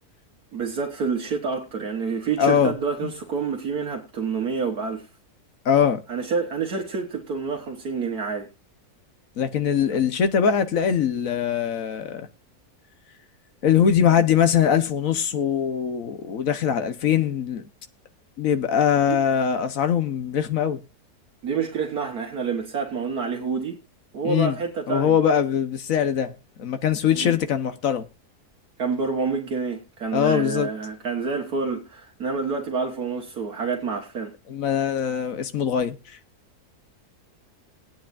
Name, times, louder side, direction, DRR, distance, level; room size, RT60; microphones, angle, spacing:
voice 1, 0.5-5.1 6.1-8.5 19.1-19.2 21.4-23.8 24.1-25.2 27.1-27.4 28.8-34.3, right 5 dB, 70° right, 1.8 m, -28 dB
voice 2, 2.4-2.8 3.0-3.1 5.6-6.0 9.4-12.3 13.6-17.7 18.4-20.8 24.2-24.6 24.9-26.3 26.6-28.1 30.1-30.7 34.5-36.2, left 8 dB, 60° left, 1.4 m, -22 dB
19.0 x 9.3 x 2.5 m
omnidirectional pair, 1.7 m